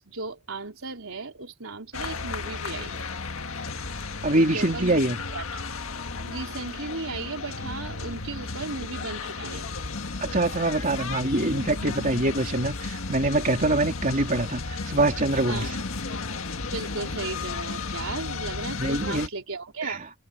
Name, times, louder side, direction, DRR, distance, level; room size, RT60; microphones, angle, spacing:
voice 1, 0.0-3.1 4.3-5.0 5.3-5.4 6.3-9.7 15.5-15.7 16.7-20.0, right 3 dB, 75° right, 4.4 m, -35 dB
sound 1, 1.9-19.3, left 4 dB, 75° left, 1.8 m, -34 dB
voice 2, 4.2-5.2 10.2-15.8 18.8-19.3 19.8-20.0, right 2 dB, 40° right, 3.4 m, -24 dB
head